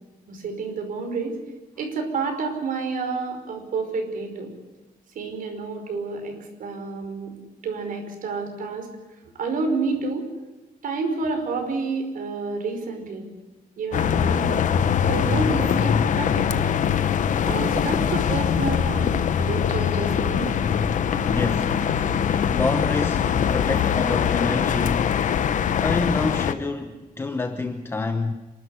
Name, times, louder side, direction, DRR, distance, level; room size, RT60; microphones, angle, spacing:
voice 1, 0.3-1.4 1.8-4.5 5.2-7.3 7.6-8.9 9.3-10.2 10.8-13.2 13.8-14.7 15.1-16.8 17.4-20.5, right 4 dB, 65° right, 5.4 m, -29 dB
sound 1, 13.9-26.5, left 8 dB, 55° left, 1.0 m, -22 dB
voice 2, 21.1-21.7 22.5-25.1 25.8-28.3, left 3 dB, 15° left, 0.9 m, -27 dB
27.5 x 13.0 x 9.9 m
wide cardioid pair, 165°, 15 cm